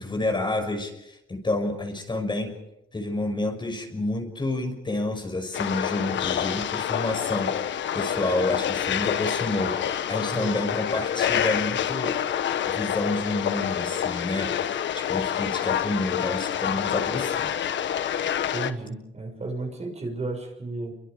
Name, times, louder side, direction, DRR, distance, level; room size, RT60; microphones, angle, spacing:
voice 1, 0.0-2.6 2.9-12.2 12.7-17.5, left 2 dB, 25° left, 4 dB, 5.9 m, -29 dB
sound 1, 5.5-18.7, left 9 dB, 70° left, 1.5 m, -27 dB
voice 2, 10.3-10.8 18.5-20.9, right 2 dB, 35° right, 4 dB, 6.4 m, -33 dB
29.0 x 24.5 x 5.2 m, 0.85 s
cardioid pair, 90°, 20 cm